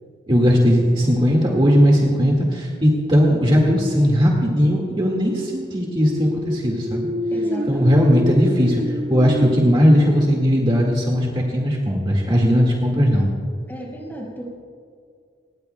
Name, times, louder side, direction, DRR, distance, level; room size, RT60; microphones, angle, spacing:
voice 1, 0.3-7.1 7.7-13.3, equal, 30° right, -2 dB, 1.9 m, -18 dB
sound 1, 5.8-11.5, equal, 45° right, 2.0 m, -28 dB
voice 2, 7.3-8.0 13.7-14.5, right 1 dB, 10° left, -2 dB, 5.0 m, -33 dB
25.5 x 20.5 x 2.3 m, 2.2 s
head